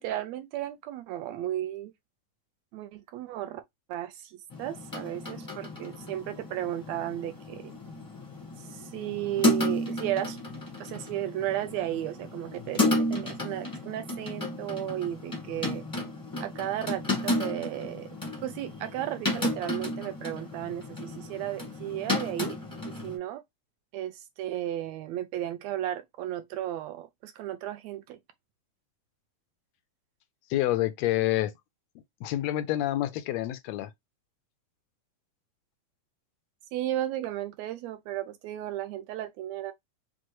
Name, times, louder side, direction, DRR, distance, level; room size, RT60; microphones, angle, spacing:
voice 1, 0.0-1.9 2.7-3.6 3.9-7.7 8.6-10.4 10.8-15.8 16.4-18.1 18.4-22.6 22.8-23.4 23.9-28.2 36.7-39.7, right 12 dB, 80° right, 1.6 m, -34 dB
sound 1, 4.5-23.2, left 1 dB, 15° left, 0.6 m, -33 dB
voice 2, 30.5-31.5 32.2-33.9, left 14 dB, 85° left, 1.5 m, -27 dB
6.0 x 2.2 x 3.0 m
omnidirectional pair, 3.4 m